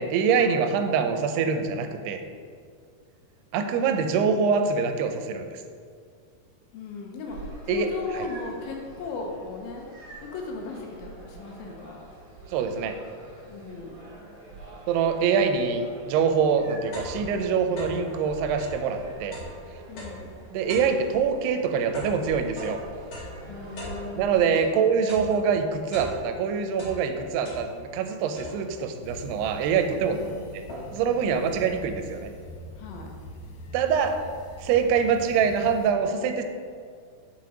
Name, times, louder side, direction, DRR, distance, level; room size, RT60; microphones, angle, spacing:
voice 1, 0.0-2.2 3.5-5.5 7.7-7.9 8.2-8.3 12.5-12.9 14.9-19.4 20.5-22.8 24.2-30.2 30.9-32.3 33.7-34.2 34.6-36.4, right 6 dB, 85° right, 7 dB, 2.7 m, -24 dB
voice 2, 6.7-7.4 7.7-9.9 10.2-12.1 13.5-14.0 19.9-20.4 23.4-24.7 30.1-30.6 32.8-33.2, left 3 dB, 75° left, 1 dB, 2.4 m, -37 dB
sound 1, 7.3-24.4, right 2 dB, 60° right, 2.1 m, -45 dB
sound 2, 16.9-18.1 18.5-24.7 25.1-26.4 26.7-28.0 28.4-28.9 29.5-29.6 29.9-31.1, equal, 40° left, 2.1 m, -41 dB
sound 3, 29.0-35.9, left 1 dB, 90° left, 1.7 m, -43 dB
6.0 x 5.7 x 4.9 m, 2.1 s
omnidirectional pair, 4.6 m